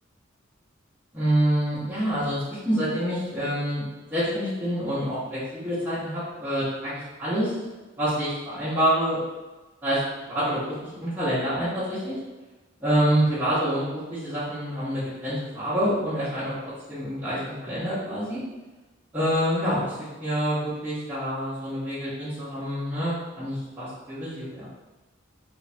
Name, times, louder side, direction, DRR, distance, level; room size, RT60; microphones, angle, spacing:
voice 1, 1.1-7.5 8.0-9.2 9.8-10.0 10.3-12.1 12.8-16.6 16.9-18.4 19.1-19.9 20.2-24.6, equal, 10° right, -14 dB, 0.9 m, -27 dB
3.4 x 2.2 x 2.6 m, 1.2 s
head